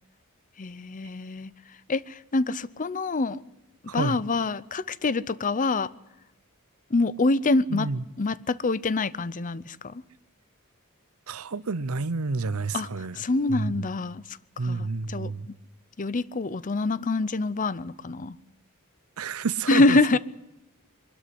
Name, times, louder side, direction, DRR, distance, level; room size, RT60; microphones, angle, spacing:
voice 1, 0.6-1.5 1.9-3.4 3.9-5.9 6.9-7.9 8.2-10.0 12.7-12.9 13.2-14.4 14.6-15.5 16.0-18.4 19.7-20.2, left 3 dB, 35° left, 0.6 m, -25 dB
voice 2, 3.9-4.2 7.7-8.0 11.3-13.2 13.5-13.9 14.6-15.5 19.2-20.0, right 4 dB, 70° right, 0.7 m, -30 dB
22.5 x 13.0 x 9.8 m
head